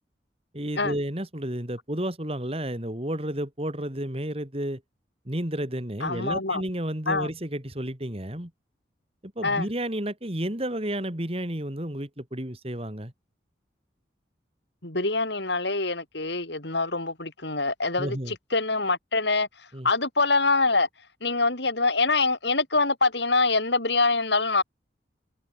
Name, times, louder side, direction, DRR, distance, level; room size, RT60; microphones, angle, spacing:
voice 1, 0.5-4.8 5.3-8.5 9.2-13.1 18.0-18.3 19.7-19.9, right 1 dB, 30° right, 2.8 m, -31 dB
voice 2, 6.0-6.6 7.1-7.3 9.4-9.7 14.8-19.5 19.8-20.9 21.2-24.6, left 3 dB, 65° left, 5.2 m, -25 dB
head